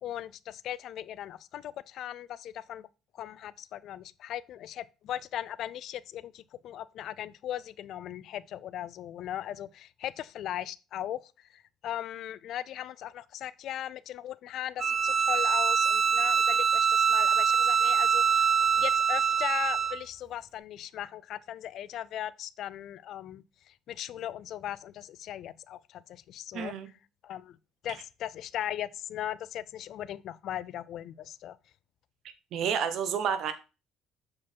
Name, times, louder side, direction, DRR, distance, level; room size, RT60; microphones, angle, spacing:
voice 1, 0.0-2.9 3.1-18.5 18.8-26.7 27.2-27.6 27.8-31.6, left 11 dB, 65° left, 0.4 m, -38 dB
Bowed string instrument, 14.8-20.0, right 6 dB, 35° right, 0.4 m, -24 dB
voice 2, 26.5-26.9 32.5-33.5, right 7 dB, 65° right, 1.2 m, -29 dB
7.2 x 4.8 x 4.5 m
cardioid pair, 105°, 0 cm